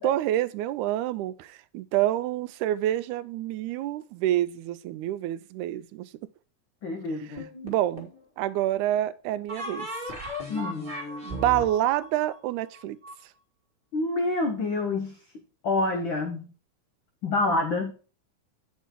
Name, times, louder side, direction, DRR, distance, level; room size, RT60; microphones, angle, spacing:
voice 1, 0.0-6.1 7.6-8.1 8.4-9.9 11.2-13.0, right 13 dB, 85° right, 2.0 m, -27 dB
voice 2, 6.8-7.4 10.5-10.9 13.9-15.2 15.6-16.5 17.2-17.9, left 2 dB, 90° left, 1.0 m, -27 dB
sound 1, 7.4-8.2 9.5-13.1, equal, 25° right, 1.0 m, -36 dB
8.4 x 6.2 x 4.4 m
omnidirectional pair, 3.4 m